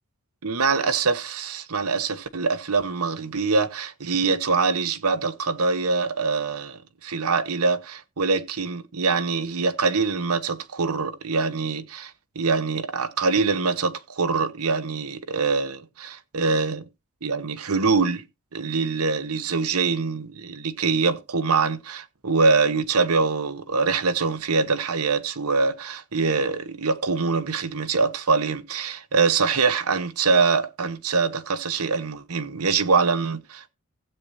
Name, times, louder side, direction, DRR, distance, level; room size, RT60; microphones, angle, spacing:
voice 1, 0.4-16.9 17.2-18.2 18.5-33.7, right 4 dB, 90° right, 1.1 m, -24 dB
15.5 x 8.4 x 2.7 m
head